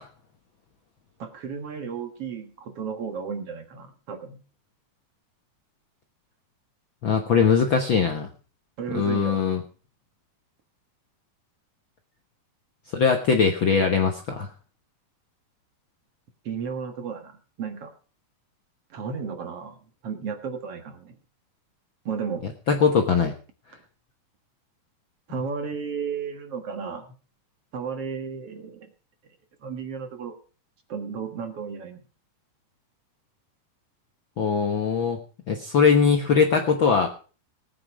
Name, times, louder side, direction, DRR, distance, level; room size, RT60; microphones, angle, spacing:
voice 1, 1.2-4.4 8.8-9.4 16.4-17.9 18.9-21.2 22.1-22.5 25.3-27.1 27.7-28.9 29.6-30.4 30.9-32.0, right 6 dB, 55° right, 6 dB, 2.2 m, -33 dB
voice 2, 7.0-8.3 8.9-9.6 12.9-14.5 22.7-23.3 34.4-35.2 35.5-37.1, left 6 dB, 55° left, 4 dB, 1.4 m, -21 dB
18.5 x 9.4 x 4.9 m, 0.37 s
omnidirectional pair, 3.7 m